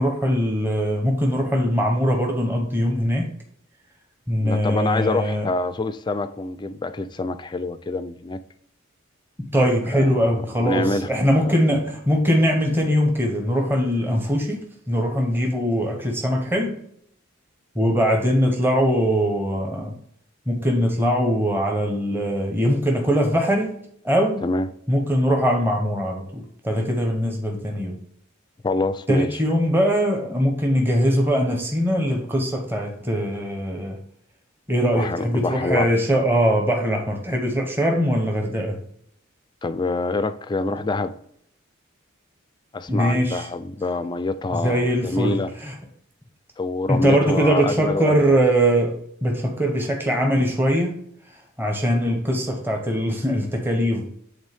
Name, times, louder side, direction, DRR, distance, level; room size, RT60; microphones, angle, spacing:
voice 1, 0.0-3.3 4.3-5.5 9.5-16.8 17.8-20.0 20.5-23.8 24.0-24.5 24.9-28.0 29.1-34.0 34.7-38.8 42.9-43.5 44.5-45.7 46.9-51.0 51.6-54.0, equal, 10° right, 0.8 m, -21 dB
voice 2, 4.4-8.4 9.9-11.1 11.4-11.5 24.4-24.7 28.6-29.4 34.9-35.9 39.6-41.2 42.7-45.5 46.6-48.4, left 2 dB, 20° left, 0.3 m, -26 dB
8.1 x 3.8 x 3.4 m
head